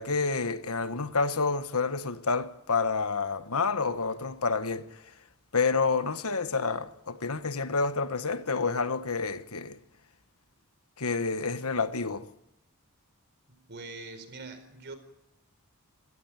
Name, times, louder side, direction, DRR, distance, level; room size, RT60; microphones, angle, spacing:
voice 1, 0.0-5.1 5.5-9.8 11.0-12.3, left 4 dB, 75° left, 1.3 m, -29 dB
voice 2, 13.5-15.0, right 3 dB, 50° right, 4.6 m, -43 dB
27.0 x 17.5 x 9.1 m
head